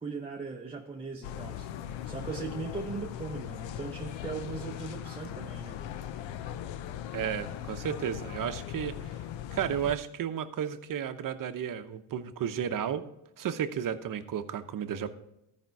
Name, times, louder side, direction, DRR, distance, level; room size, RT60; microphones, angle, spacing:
voice 1, 0.0-5.8, right 4 dB, 15° right, -1 dB, 0.8 m, -39 dB
sound 1, 1.2-10.0, left 10 dB, 85° left, 0.7 m, -39 dB
voice 2, 7.1-9.1 9.5-13.0 13.4-15.1, right 9 dB, 45° right, 10 dB, 0.8 m, -33 dB
13.5 x 5.2 x 4.6 m, 0.86 s
cardioid pair, 105°, 44 cm